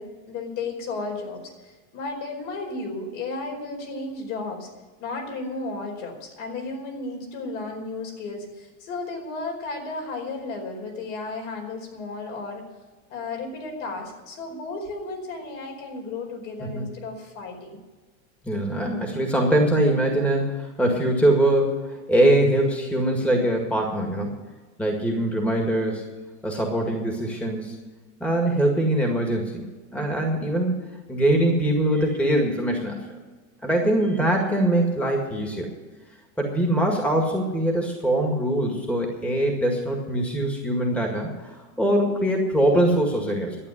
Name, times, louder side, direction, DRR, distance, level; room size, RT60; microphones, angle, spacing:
voice 1, 0.0-4.7 5.0-12.6 13.1-17.8 41.9-42.0, left 3 dB, 60° left, 2 dB, 4.9 m, -34 dB
voice 2, 18.4-24.4 24.8-26.1 26.4-27.8 28.2-29.6 29.9-33.2 33.6-35.7 36.4-43.6, right 1 dB, 5° left, 1 dB, 1.9 m, -23 dB
12.0 x 8.9 x 9.8 m, 1.3 s
supercardioid pair, 145°, 43 cm